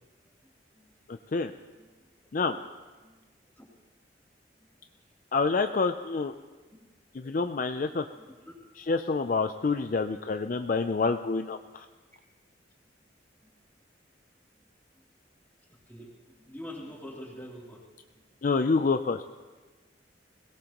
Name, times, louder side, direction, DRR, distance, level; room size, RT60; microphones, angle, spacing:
voice 1, 1.1-1.5 2.3-2.5 5.3-6.3 7.1-8.0 8.8-11.9 18.4-19.2, left 4 dB, 45° left, 7 dB, 0.4 m, -27 dB
voice 2, 8.2-8.6 15.9-16.1 16.4-17.8, equal, 10° left, -4 dB, 3.0 m, -45 dB
21.5 x 17.5 x 3.0 m, 1.3 s
head